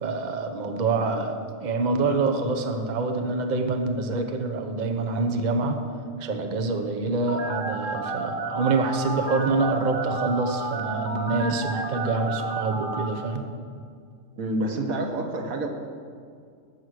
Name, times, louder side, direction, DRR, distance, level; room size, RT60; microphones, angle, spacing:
voice 1, 0.0-5.8 6.2-13.5, right 3 dB, 40° right, 6 dB, 0.9 m, -26 dB
Telephone, 7.3-13.1, right 3 dB, 70° right, 1.7 m, -31 dB
voice 2, 14.3-15.7, right 1 dB, 90° right, 3 dB, 1.7 m, -28 dB
14.0 x 6.3 x 6.4 m, 2.2 s
omnidirectional pair, 1.4 m